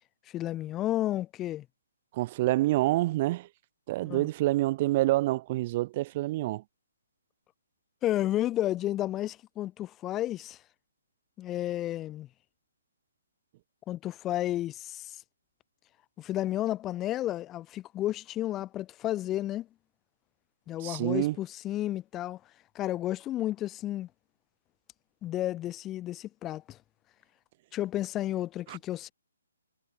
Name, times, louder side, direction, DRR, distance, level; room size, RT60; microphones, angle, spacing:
voice 1, 0.3-1.7 4.1-4.3 8.0-10.6 11.4-12.3 13.9-15.2 16.2-19.7 20.7-22.4 22.7-24.1 25.2-26.8 27.7-29.1, left 13 dB, 20° left, 5.4 m, -32 dB
voice 2, 2.1-3.5 3.9-6.6 20.8-21.3 28.7-28.8, right 17 dB, 35° right, 1.2 m, -27 dB
figure-of-eight pair, 135°, 0 cm